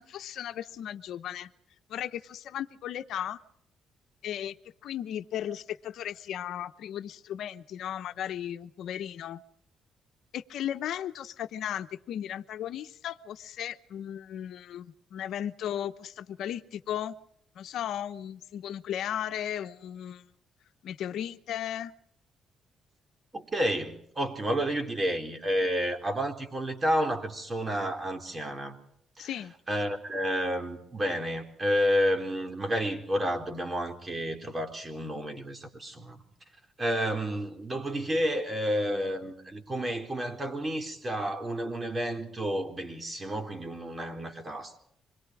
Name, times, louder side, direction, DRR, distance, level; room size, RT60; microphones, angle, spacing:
voice 1, 0.0-1.5 1.9-3.4 4.2-4.5 4.8-9.4 10.3-17.1 17.6-20.3 20.8-21.9 29.2-29.5, left 10 dB, 75° left, 1.0 m, -36 dB
voice 2, 23.3-28.8 29.2-29.3 29.7-36.2 36.8-44.8, equal, 25° right, 4.2 m, -30 dB
26.5 x 22.0 x 4.9 m
cardioid pair, 90°, 0 cm